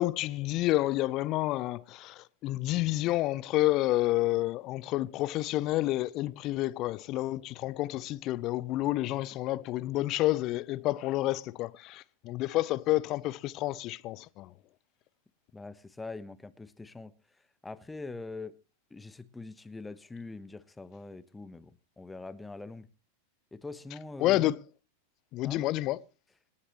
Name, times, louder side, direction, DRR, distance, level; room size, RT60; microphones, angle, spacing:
voice 1, 0.0-14.5 24.2-24.6 25.3-26.0, left 17 dB, 40° left, 0.6 m, -29 dB
voice 2, 15.5-18.6 18.9-22.9 23.5-24.5 25.4-25.7, left 3 dB, 10° left, 0.9 m, -43 dB
26.5 x 9.9 x 3.0 m
figure-of-eight pair, 90°, 0 cm